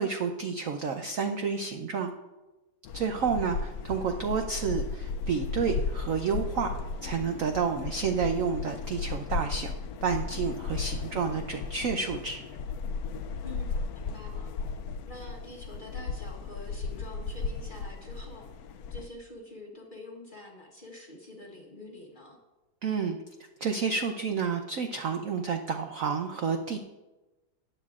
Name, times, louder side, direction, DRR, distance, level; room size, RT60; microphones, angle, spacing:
voice 1, 0.0-2.1 2.9-6.7 7.0-9.8 10.0-12.4 22.8-23.2 23.6-26.8, right 6 dB, 70° right, 5 dB, 0.8 m, -30 dB
sound 1, 2.8-19.1, left 4 dB, 75° left, 0.8 m, -35 dB
voice 2, 13.4-14.5 15.1-18.5 18.9-22.4, left 1 dB, 35° left, 0 dB, 1.0 m, -46 dB
14.5 x 10.0 x 2.4 m, 1.1 s
omnidirectional pair, 2.1 m